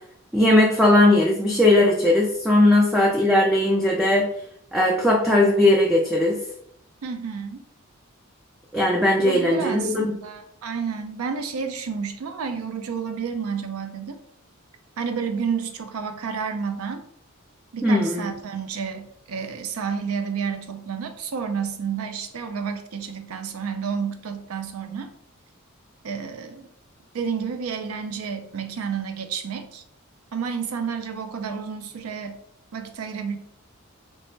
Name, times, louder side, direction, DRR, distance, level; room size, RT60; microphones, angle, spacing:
voice 1, 0.3-4.3 4.7-6.4 8.7-10.1 17.8-18.3, left 1 dB, ahead, -3 dB, 0.3 m, -18 dB
voice 2, 7.0-7.6 9.2-14.2 15.0-17.0 17.7-25.1 26.0-26.7 27.1-29.8 30.3-32.4 32.7-33.4, right 6 dB, 80° right, 8 dB, 0.4 m, -30 dB
3.2 x 2.0 x 3.1 m, 0.67 s
head